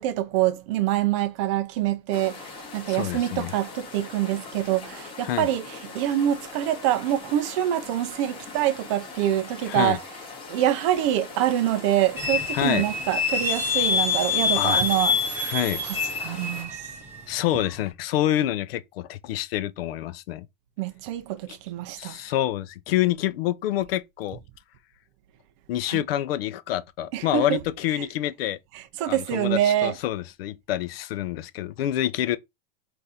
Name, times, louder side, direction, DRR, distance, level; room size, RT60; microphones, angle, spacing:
voice 1, 0.0-10.0 10.5-15.4 15.8-16.9 20.8-22.3 25.9-26.0 27.1-27.6 28.0-28.1 28.7-30.0, right 12 dB, 30° right, 0.4 m, -25 dB
sound 1, 2.1-16.6, left 4 dB, 15° left, 0.8 m, -41 dB
voice 2, 2.8-3.5 5.2-5.5 9.6-10.0 12.5-12.9 14.6-14.8 15.4-15.8 17.3-20.5 21.5-21.6 22.0-24.4 25.7-28.6 29.1-32.4, left 13 dB, 70° left, 0.5 m, -27 dB
sound 2, 12.2-17.8, left 5 dB, 10° right, 0.9 m, -26 dB
3.6 x 2.6 x 4.1 m
supercardioid pair, 165°, 30 cm